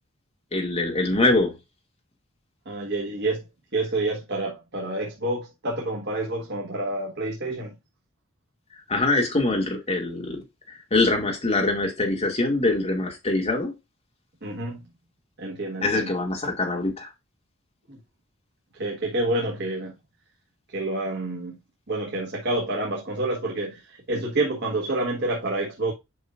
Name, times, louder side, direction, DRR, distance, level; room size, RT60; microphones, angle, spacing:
voice 1, 0.5-1.5 8.9-10.4 10.7-13.7 15.8-17.1, left 2 dB, 30° left, 2.2 m, -24 dB
voice 2, 2.6-3.5 3.7-7.7 14.4-14.8 15.4-16.1 17.9-18.0 18.7-19.9 20.7-21.6 21.9-25.9, right 2 dB, 55° right, 1.6 m, -28 dB
8.2 x 5.6 x 2.5 m
head